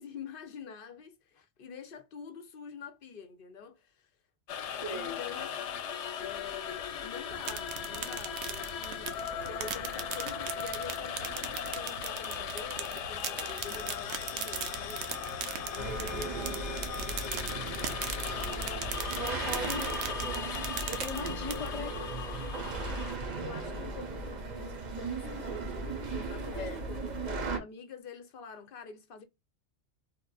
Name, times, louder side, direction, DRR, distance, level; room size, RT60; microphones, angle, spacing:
voice 1, 0.0-4.1 4.9-5.5 6.2-15.3 15.7-18.9 19.4-20.0 21.5-21.8 23.4-29.2, left 6 dB, 60° left, 0.7 m, -46 dB
sound 1, 4.5-23.1, left 7 dB, 90° left, 0.9 m, -38 dB
voice 2, 4.8-5.2 19.1-20.5 20.9-22.5 26.5-26.8, left 1 dB, 30° left, 0.9 m, -40 dB
sound 2, 7.3-21.8, right 8 dB, 80° right, 0.9 m, -40 dB
sound 3, 15.8-27.6, right 3 dB, 45° right, 0.8 m, -37 dB
3.6 x 2.4 x 2.2 m
omnidirectional pair, 1.1 m